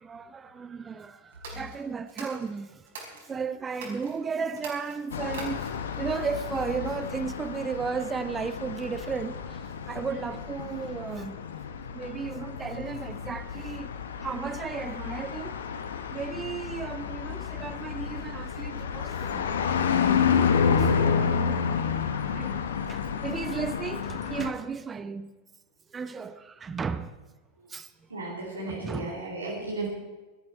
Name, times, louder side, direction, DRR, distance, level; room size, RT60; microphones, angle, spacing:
voice 1, 0.0-2.9 3.2-9.6 9.9-11.4 11.9-14.0 14.2-15.6 16.1-19.5 20.6-21.7 22.3-25.3 25.9-27.2 27.7-27.9 28.7-29.2, right 5 dB, 20° right, 0.7 m, -34 dB
sound 1, 1.3-3.3 3.7-4.1 4.5-5.9, right 4 dB, 60° right, 4.8 m, -44 dB
sound 2, 5.1-24.5, left 6 dB, 65° left, 1.2 m, -30 dB
voice 2, 28.1-29.9, right 2 dB, 80° right, 3.9 m, -34 dB
18.5 x 13.0 x 4.4 m
figure-of-eight pair, 90°, 0 cm